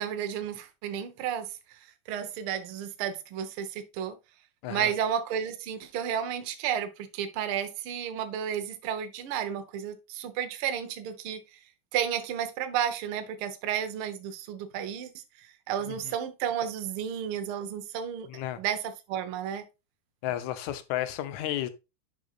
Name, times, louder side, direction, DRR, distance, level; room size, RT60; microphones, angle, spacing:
voice 1, 0.0-1.5 2.1-4.2 4.7-11.4 11.9-15.1 15.7-18.3 18.6-19.6, right 9 dB, 70° right, 1.3 m, -32 dB
voice 2, 18.3-18.6 20.2-21.7, left 12 dB, 75° left, 2.0 m, -32 dB
10.0 x 5.4 x 2.4 m
omnidirectional pair, 3.6 m